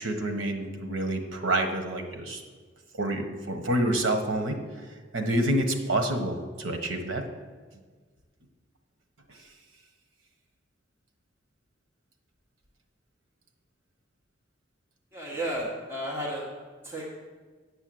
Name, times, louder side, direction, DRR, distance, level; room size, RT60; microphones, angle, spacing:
voice 1, 0.0-2.4 2.9-4.6 5.1-7.2 9.3-9.4, right 1 dB, 90° right, 5 dB, 1.2 m, -28 dB
voice 2, 15.1-16.4 16.8-17.1, right 1 dB, 10° right, -5 dB, 1.5 m, -32 dB
8.1 x 6.8 x 7.8 m, 1.5 s
head